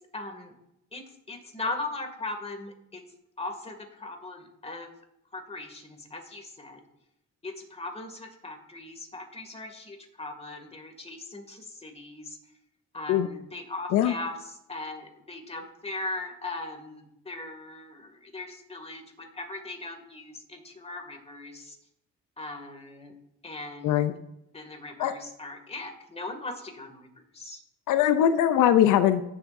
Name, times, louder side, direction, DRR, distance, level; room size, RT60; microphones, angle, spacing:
voice 1, 0.1-0.5 0.9-3.0 3.4-4.9 5.3-6.8 7.4-12.4 12.9-14.4 14.7-21.8 22.4-23.1 23.4-24.0 24.5-27.1 27.3-27.6, left 2 dB, 20° left, 4 dB, 2.2 m, -39 dB
voice 2, 27.9-29.2, left 10 dB, 85° left, 10 dB, 0.6 m, -21 dB
16.5 x 7.4 x 2.6 m, 0.83 s
cardioid pair, 90°, 30 cm